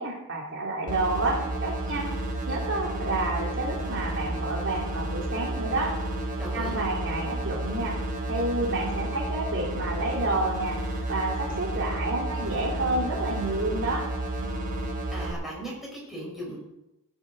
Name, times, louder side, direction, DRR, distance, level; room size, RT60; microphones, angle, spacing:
voice 1, 0.0-2.1 2.5-6.0 6.5-8.0 8.3-10.8 11.1-14.1, right 2 dB, 60° right, -1 dB, 3.0 m, -29 dB
sound 1, 0.9-15.3, right 1 dB, 40° right, 5.2 m, -31 dB
voice 2, 6.4-6.8 14.8-16.6, right 1 dB, ahead, -4 dB, 5.5 m, -38 dB
16.0 x 8.0 x 7.8 m, 0.92 s
head